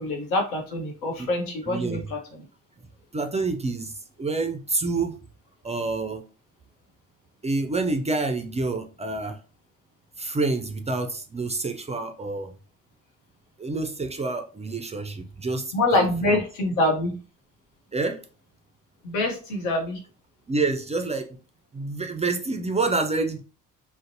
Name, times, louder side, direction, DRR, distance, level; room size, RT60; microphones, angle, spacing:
voice 1, 0.0-2.2 15.7-17.1 19.0-20.0, left 2 dB, 85° left, 0.7 m, -25 dB
voice 2, 1.7-2.0 3.1-5.2 5.6-6.2 7.4-9.4 10.2-12.5 13.6-16.4 17.9-18.2 20.5-21.4 21.7-23.4, right 3 dB, 20° right, 0.3 m, -28 dB
2.5 x 2.0 x 2.6 m
hypercardioid pair, 50°, 39 cm